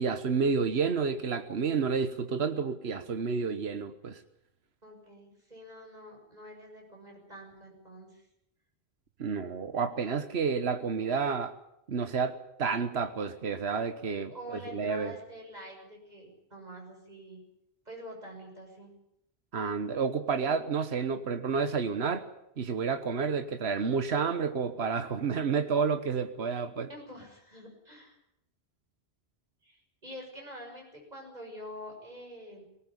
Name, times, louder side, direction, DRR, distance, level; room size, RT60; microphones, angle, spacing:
voice 1, 0.0-4.2 9.2-11.5 11.9-14.3 14.7-15.1 19.5-22.3 22.6-26.9, right 5 dB, 80° right, 9 dB, 1.5 m, -30 dB
voice 2, 4.8-8.3 14.3-17.4 17.8-18.9 26.9-28.2 29.6-32.6, equal, 40° right, 1 dB, 6.9 m, -46 dB
19.0 x 18.5 x 9.9 m, 0.79 s
omnidirectional pair, 1.1 m